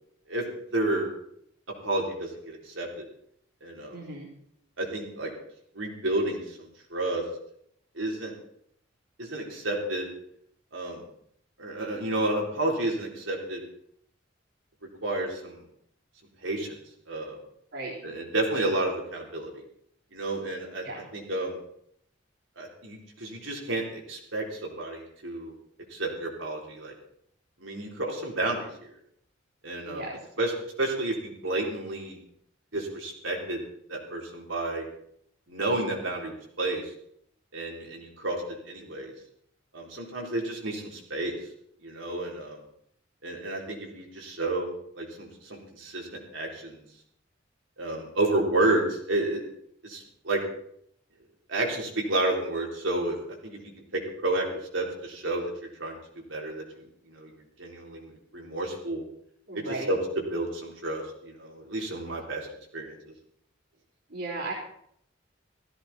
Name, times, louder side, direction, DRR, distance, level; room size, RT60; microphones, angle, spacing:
voice 1, 0.7-1.1 1.8-3.0 3.6-4.0 4.8-5.3 5.7-7.2 8.0-8.3 9.2-10.1 10.7-11.0 11.6-13.6 15.0-15.6 16.4-16.7 17.1-17.4 18.0-19.5 20.1-20.8 21.1-21.6 22.6-25.5 25.9-26.9 27.6-28.7 29.6-30.1 30.4-32.2 32.7-33.6 33.9-34.9 35.5-36.9 37.5-39.1 39.7-41.3 41.8-42.6 43.2-44.7 45.0-46.1 46.3-46.8 47.8-49.4 49.8-50.4 51.5-53.6 53.9-54.5 54.7-55.5 55.8-56.0 56.3-56.6 57.1-57.3 57.6-59.0 59.5-62.5 62.7-63.0, right 2 dB, 90° right, -1 dB, 4.0 m, -30 dB
voice 2, 3.9-4.3 17.7-17.9 20.8-21.1 29.8-30.2 59.5-59.9 64.1-64.5, right 2 dB, 70° right, -6 dB, 3.6 m, -35 dB
16.0 x 14.5 x 4.3 m, 0.69 s
head